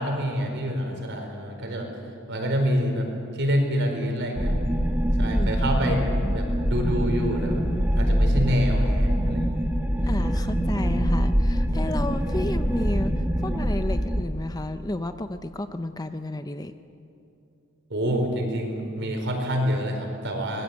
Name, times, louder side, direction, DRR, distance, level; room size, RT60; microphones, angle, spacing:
voice 1, 0.0-1.9 2.3-3.1 3.4-4.6 5.2-7.7 7.9-9.6 17.9-20.6, equal, 55° right, 3 dB, 4.7 m, -27 dB
sound 1, 4.4-14.2, equal, 10° right, 1.4 m, -24 dB
voice 2, 5.3-5.6 6.2-6.4 10.0-16.7, left 1 dB, 15° left, 9 dB, 0.7 m, -32 dB
25.0 x 20.5 x 8.4 m, 2.7 s
head